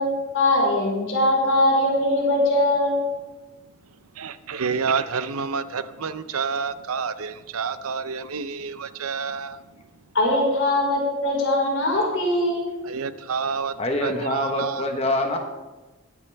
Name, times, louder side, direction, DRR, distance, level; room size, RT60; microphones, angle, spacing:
voice 1, 0.0-3.0 10.1-12.7, left 1 dB, 65° left, -3 dB, 4.9 m, -21 dB
voice 2, 4.2-9.6 12.9-13.7 14.0-14.8, right 5 dB, 85° right, 13 dB, 0.7 m, -28 dB
voice 3, 13.8-15.4, left 2 dB, 30° left, 3 dB, 1.2 m, -25 dB
21.5 x 8.7 x 3.5 m, 1.2 s
head